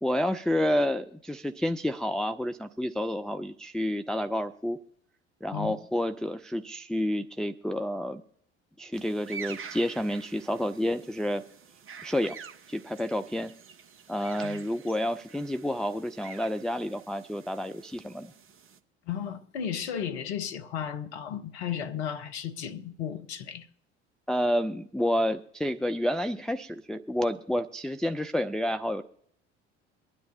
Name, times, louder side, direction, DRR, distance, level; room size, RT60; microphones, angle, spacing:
voice 1, 0.0-4.8 5.4-8.2 8.8-11.4 12.0-12.3 12.7-13.5 14.1-18.3 24.3-29.0, left 1 dB, ahead, 0.5 m, -29 dB
sound 1, 8.9-18.8, right 6 dB, 40° right, 1.2 m, -47 dB
voice 2, 19.1-23.7, left 8 dB, 70° left, 1.0 m, -34 dB
23.5 x 9.8 x 2.8 m
figure-of-eight pair, 60°, 34 cm